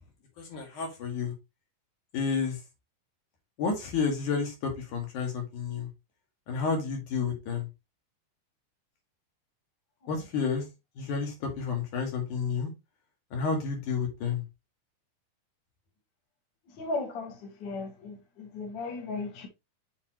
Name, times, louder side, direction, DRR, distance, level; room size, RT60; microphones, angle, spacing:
voice 1, 0.4-1.3 2.1-2.6 3.6-5.9 6.5-7.7 10.1-10.6 11.0-12.7 13.3-14.4, left 5 dB, 75° left, 3.3 m, -30 dB
voice 2, 16.8-19.5, left 3 dB, 50° left, 1.7 m, -36 dB
7.1 x 4.6 x 2.9 m
omnidirectional pair, 3.6 m